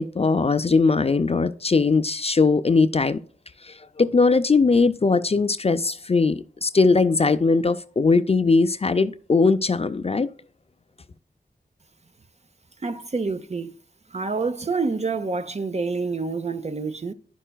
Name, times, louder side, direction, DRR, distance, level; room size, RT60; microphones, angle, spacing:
voice 1, 0.0-3.2 4.0-10.3, left 4 dB, 35° left, 0.4 m, -20 dB
voice 2, 12.8-13.7 14.1-17.1, right 4 dB, 40° right, 0.7 m, -27 dB
11.0 x 5.5 x 2.3 m
cardioid pair, 45°, 18 cm